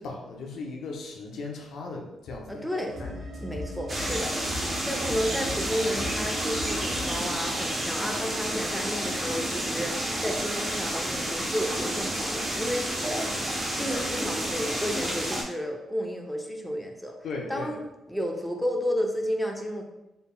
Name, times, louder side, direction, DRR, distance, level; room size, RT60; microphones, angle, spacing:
voice 1, 0.0-3.3 17.2-17.7, left 3 dB, 75° left, 0 dB, 0.7 m, -37 dB
voice 2, 2.5-2.9 3.4-17.2 17.5-17.8 18.1-19.8, equal, ahead, 1 dB, 0.5 m, -32 dB
sound 1, 2.9-8.9 9.3-9.4, equal, 70° right, 1.2 m, -38 dB
sound 2, 3.9-15.4, right 1 dB, 25° right, 0.9 m, -30 dB
4.0 x 3.8 x 2.2 m, 0.95 s
cardioid pair, 100°, 0 cm